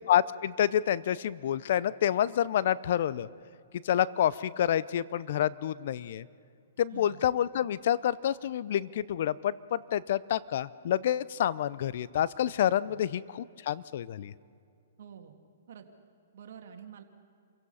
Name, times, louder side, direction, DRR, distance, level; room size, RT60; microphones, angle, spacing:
voice 1, 0.1-3.3 3.8-6.3 6.8-14.3, left 10 dB, 55° left, 19 dB, 0.6 m, -28 dB
voice 2, 12.7-13.0 15.0-15.4 15.7-15.9 16.3-17.0, right 8 dB, 65° right, 5 dB, 2.2 m, -48 dB
28.0 x 16.5 x 5.6 m, 2.4 s
hypercardioid pair, 145°, 0 cm